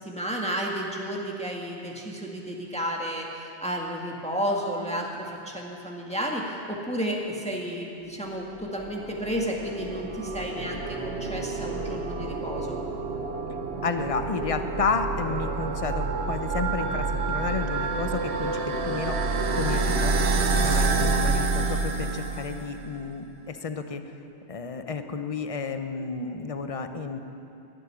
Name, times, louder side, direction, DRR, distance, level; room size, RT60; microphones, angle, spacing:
voice 1, 0.0-12.8, equal, 5° left, -1 dB, 1.7 m, -32 dB
sound 1, 8.6-22.8, right 3 dB, 65° right, 1.3 m, -28 dB
voice 2, 13.8-24.1 24.5-27.2, left 5 dB, 35° left, 7 dB, 0.8 m, -32 dB
12.0 x 11.5 x 9.9 m, 2.8 s
omnidirectional pair, 1.2 m